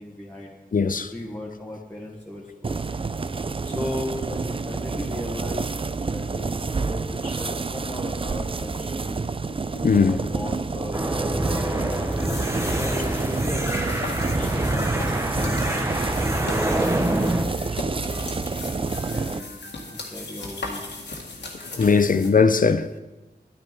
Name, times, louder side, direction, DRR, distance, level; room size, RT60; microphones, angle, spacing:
voice 1, 0.0-0.5 1.1-2.8 3.6-5.7 6.1-9.2 10.0-12.0 12.6-19.6 19.9-20.9, left 1 dB, 10° left, 1.5 m, -36 dB
voice 2, 0.7-1.1 9.8-10.2 21.7-23.0, left 5 dB, 50° left, 0.5 m, -19 dB
sound 1, 2.6-19.4, right 4 dB, 30° right, 0.4 m, -29 dB
sound 2, 10.9-17.5, right 1 dB, 15° right, 1.0 m, -26 dB
sound 3, 11.9-22.3, left 2 dB, 85° left, 1.8 m, -37 dB
10.5 x 10.0 x 4.7 m
wide cardioid pair, 85°, 18 cm